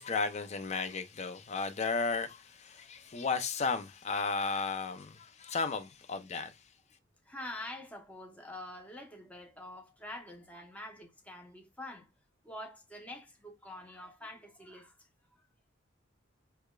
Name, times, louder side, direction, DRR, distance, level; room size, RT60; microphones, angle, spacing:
voice 1, 0.0-6.6, left 4 dB, 35° left, 0.5 m, -34 dB
voice 2, 7.2-12.1 12.4-15.0 15.4-15.5, left 1 dB, 5° left, 0.8 m, -46 dB
4.8 x 2.4 x 2.2 m
head